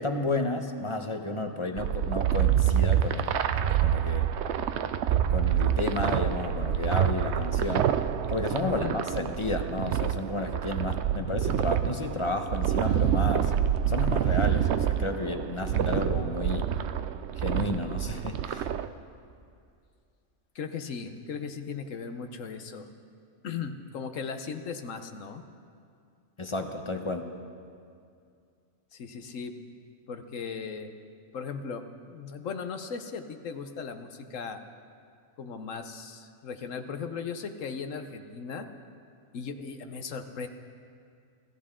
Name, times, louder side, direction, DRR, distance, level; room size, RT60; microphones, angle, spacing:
voice 1, 0.0-4.3 5.1-7.9 8.3-13.5 13.9-16.7 17.4-18.7 26.4-27.2, left 2 dB, 25° left, 5 dB, 0.8 m, -32 dB
sound 1, 1.8-18.9, right 10 dB, 65° right, 0.8 m, -27 dB
voice 2, 8.6-9.0 20.5-22.9 23.4-25.4 28.9-29.5 30.1-30.9 31.3-34.6 35.4-38.7 39.3-40.5, left 5 dB, 70° left, 7 dB, 1.2 m, -37 dB
26.5 x 13.5 x 3.7 m, 2.4 s
omnidirectional pair, 1.4 m